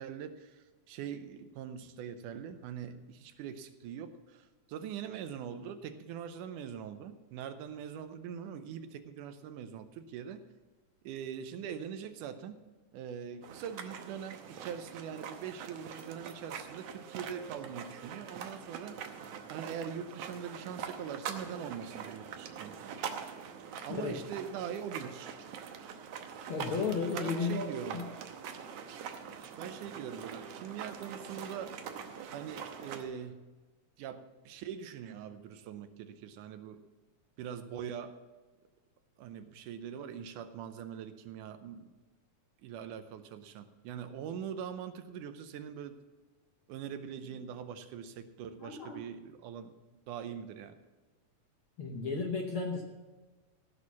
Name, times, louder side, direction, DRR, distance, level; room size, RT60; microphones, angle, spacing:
voice 1, 0.0-10.4 11.0-12.6 12.9-19.0 19.5-23.0 23.8-25.4 27.1-28.0 29.6-31.8 32.3-33.4 34.0-36.8 37.4-38.2 39.2-41.9 42.6-46.0 46.7-49.7 50.1-50.8, right 8 dB, 85° right, 10 dB, 2.3 m, -42 dB
sound 1, 13.4-33.0, right 7 dB, 65° right, 1.7 m, -43 dB
voice 2, 26.5-27.7 27.9-28.1 48.6-49.0 51.8-52.8, left 5 dB, 65° left, 2 dB, 1.4 m, -34 dB
15.5 x 6.4 x 7.2 m, 1.3 s
omnidirectional pair, 3.6 m